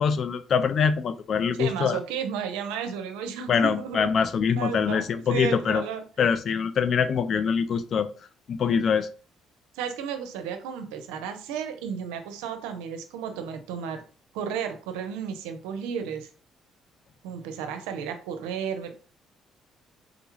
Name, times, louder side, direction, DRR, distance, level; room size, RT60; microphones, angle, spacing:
voice 1, 0.0-2.0 3.5-5.8 6.2-8.1 8.5-9.1, left 6 dB, 55° left, 10 dB, 0.3 m, -24 dB
voice 2, 1.6-4.1 4.4-6.0 9.7-14.0 14.3-16.3 17.2-18.9, right 7 dB, 90° right, 7 dB, 0.5 m, -33 dB
3.8 x 2.3 x 3.1 m, 0.38 s
supercardioid pair, 70°, 0 cm